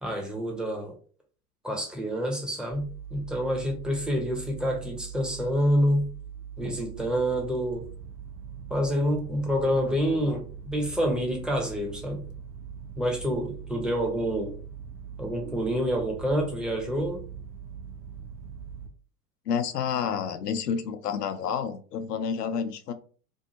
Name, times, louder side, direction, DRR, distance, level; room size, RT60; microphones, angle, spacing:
voice 1, 0.0-0.9 1.6-6.1 6.6-7.8 8.7-12.2 13.0-14.5 15.2-17.2, equal, ahead, 0 dB, 0.6 m, -27 dB
sound 1, 2.7-18.9, right 7 dB, 45° right, 0.8 m, -42 dB
voice 2, 19.5-22.9, left 7 dB, 85° left, 9 dB, 0.5 m, -29 dB
2.6 x 2.4 x 2.8 m, 0.41 s
figure-of-eight pair, 90°, 46 cm